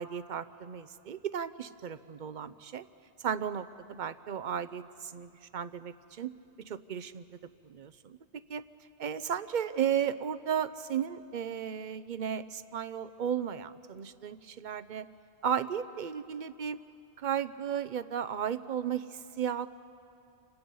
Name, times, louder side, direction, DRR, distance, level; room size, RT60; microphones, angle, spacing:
voice 1, 0.0-2.8 3.2-6.3 6.6-7.4 7.7-8.6 9.0-15.1 15.4-16.8 17.2-19.7, right 8 dB, 50° right, 13 dB, 0.7 m, -34 dB
28.5 x 25.0 x 5.5 m, 2.6 s
omnidirectional pair, 1.2 m